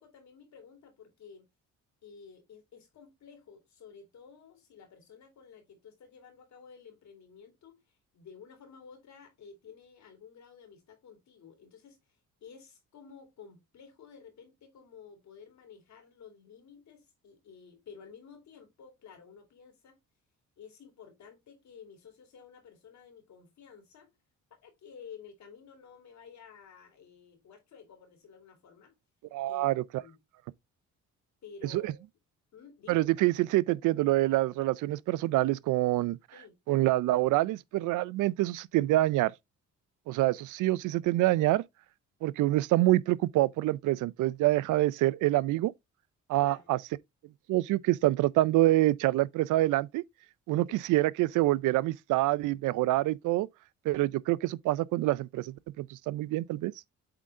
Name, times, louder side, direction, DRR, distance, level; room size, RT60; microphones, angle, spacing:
voice 1, 0.0-1.5 2.0-20.0 20.6-24.1 24.6-29.0 29.4-30.2 31.4-32.0 32.5-33.1 36.3-36.5 40.2-40.8 46.4-46.7 50.7-50.9, left 6 dB, 65° left, 3.0 m, -53 dB
voice 2, 29.3-29.8 31.7-31.9 32.9-36.2 36.7-39.3 40.1-41.6 42.2-45.7 46.3-46.8 47.5-50.0 50.5-53.5 53.9-56.7, right 17 dB, 85° right, 0.5 m, -26 dB
8.1 x 3.8 x 3.5 m
cardioid pair, 90°, 30 cm